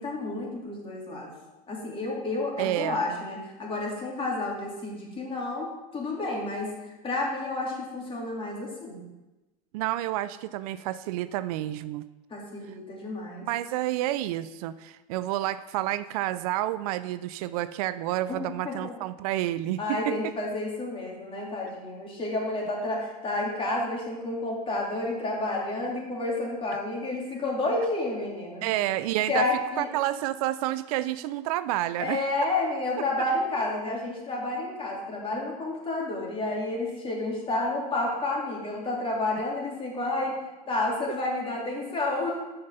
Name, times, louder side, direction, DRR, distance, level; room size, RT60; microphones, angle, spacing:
voice 1, 0.0-1.3 1.7-6.7 7.0-9.0 12.3-13.5 18.3-18.9 19.8-28.7 29.3-29.9 32.0-40.4 40.7-42.4, left 2 dB, 25° left, -2 dB, 2.8 m, -30 dB
voice 2, 2.6-3.0 9.7-12.1 13.5-20.3 28.6-29.5 29.8-32.2, right 14 dB, 70° right, 14 dB, 0.5 m, -29 dB
6.3 x 5.8 x 6.8 m, 1.1 s
hypercardioid pair, 100°, 19 cm